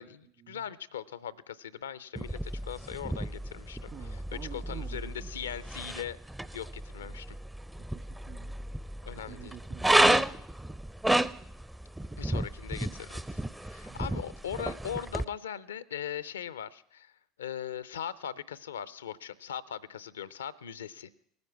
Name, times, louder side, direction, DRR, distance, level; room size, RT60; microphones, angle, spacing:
voice 1, 0.0-4.2 4.5-6.2 6.5-7.4 9.1-9.5 10.0-10.2 12.2-17.1 17.4-21.1, left 9 dB, 80° left, 18 dB, 0.5 m, -40 dB
sound 1, 2.2-15.2, right 1 dB, 10° right, 0.5 m, -32 dB
voice 2, 3.9-5.3 7.8-8.5 9.2-10.1 13.9-14.1, right 10 dB, 55° right, 8 dB, 1.5 m, -48 dB
19.0 x 9.5 x 6.0 m, 0.69 s
hypercardioid pair, 70°, 0 cm